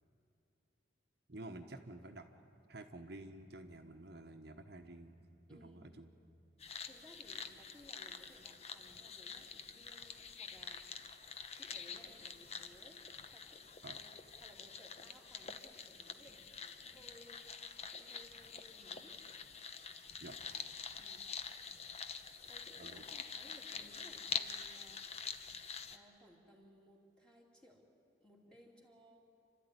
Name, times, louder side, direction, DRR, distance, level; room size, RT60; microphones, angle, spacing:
voice 1, 1.3-2.3 2.7-6.1 13.8-14.0 20.2-20.4 22.7-23.1, right 2 dB, 60° right, 4 dB, 1.2 m, -51 dB
voice 2, 5.5-5.9 6.8-10.8 11.5-13.0 13.3-14.1 14.4-17.4 17.9-19.2 21.0-21.3 22.5-25.0 25.9-27.8 28.2-29.2, equal, 5° left, -1 dB, 2.9 m, -61 dB
sound 1, 6.6-26.0, left 6 dB, 35° left, 0.9 m, -46 dB
29.0 x 13.0 x 9.8 m, 2.6 s
head